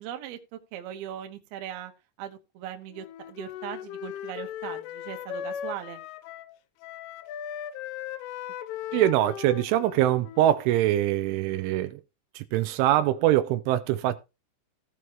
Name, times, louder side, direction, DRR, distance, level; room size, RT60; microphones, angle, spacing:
voice 1, 0.0-1.9 2.2-6.0, right 10 dB, 65° right, 2.8 m, -39 dB
Wind instrument woodwind instrument, 2.9-6.6 6.8-10.7, left 10 dB, 90° left, 3.3 m, -38 dB
voice 2, 8.9-12.0 12.4-14.2, right 13 dB, 85° right, 3.1 m, -23 dB
16.5 x 6.3 x 3.0 m
omnidirectional pair, 5.5 m